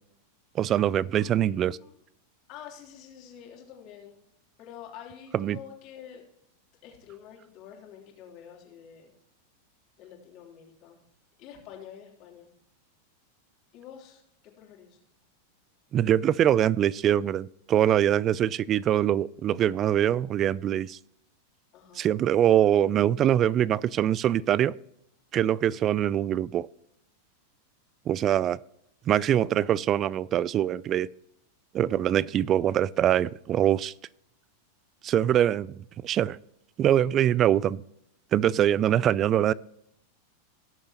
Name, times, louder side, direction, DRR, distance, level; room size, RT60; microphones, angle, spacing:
voice 1, 0.6-1.8 5.3-5.6 15.9-21.0 22.0-24.8 25.3-26.7 28.1-28.6 29.1-31.1 31.7-33.9 35.0-36.4 36.8-37.8 38.3-39.5, right 11 dB, 35° right, 0.3 m, -23 dB
voice 2, 1.2-1.9 2.5-4.2 4.6-6.2 6.8-9.1 10.0-11.0 11.4-12.5 13.7-15.0 18.9-19.2 21.7-22.1, left 9 dB, 50° left, 3.3 m, -47 dB
18.5 x 6.7 x 2.9 m
hypercardioid pair, 115°, 0 cm